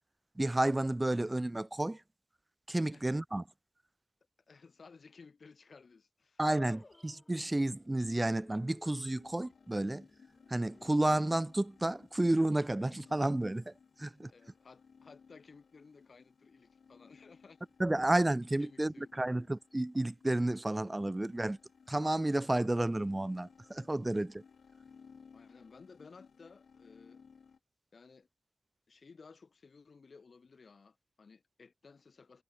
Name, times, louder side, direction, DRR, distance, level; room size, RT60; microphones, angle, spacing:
voice 1, 0.4-2.0 2.7-3.4 6.4-10.1 10.5-13.7 14.0-14.3 17.8-21.6 21.9-24.4, right 1 dB, 20° right, 0.3 m, -31 dB
voice 2, 4.5-6.4 14.3-17.6 18.6-19.1 25.3-27.2 27.9-28.3 28.9-32.4, left 4 dB, 60° left, 4.0 m, -57 dB
sound 1, 6.5-12.9, left 2 dB, 30° left, 5.8 m, -58 dB
sound 2, 9.2-27.6, left 6 dB, 80° left, 4.4 m, -60 dB
wide cardioid pair, 105°, 0 cm